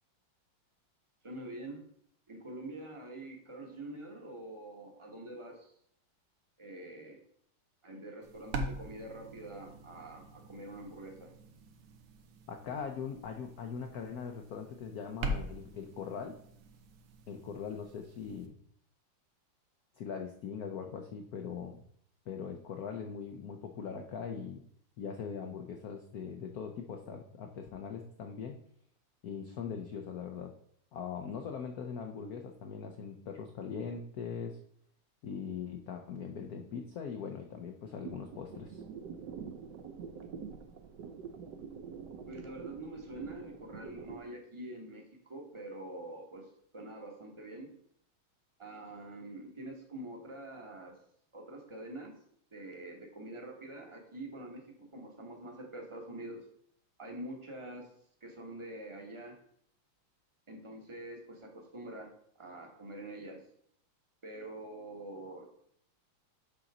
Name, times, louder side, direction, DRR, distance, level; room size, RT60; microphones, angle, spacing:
voice 1, 1.2-1.8 2.3-5.7 6.6-7.2 7.8-11.3 42.3-47.7 48.6-51.0 51.3-52.1 52.5-56.5 57.0-57.9 58.2-59.4 60.5-62.1 62.4-63.4 64.2-65.5, right 1 dB, 20° right, 1 dB, 0.8 m, -45 dB
sound 1, 8.2-18.5, right 1 dB, 85° right, 1.8 m, -43 dB
voice 2, 12.5-16.4 17.3-18.6 20.0-21.8 22.3-24.6 25.0-28.6 29.2-30.5 30.9-34.6 35.2-38.8, left 6 dB, 75° left, 4 dB, 0.8 m, -41 dB
sound 2, 38.0-44.2, right 6 dB, 65° right, 1.1 m, -46 dB
6.9 x 3.9 x 6.0 m, 0.66 s
omnidirectional pair, 2.4 m